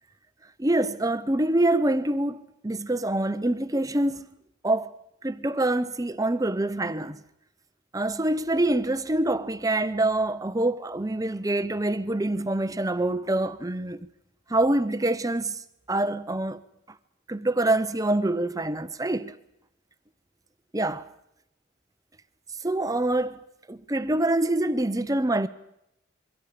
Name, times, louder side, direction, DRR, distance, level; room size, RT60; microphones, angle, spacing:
voice 1, 0.6-4.3 4.6-4.9 5.2-7.2 7.9-14.0 14.5-15.6 15.9-16.6 17.3-19.4 20.7-21.0 22.6-23.4 23.7-25.5, right 1 dB, 15° right, 0.8 m, -25 dB
27.5 x 23.5 x 5.1 m
head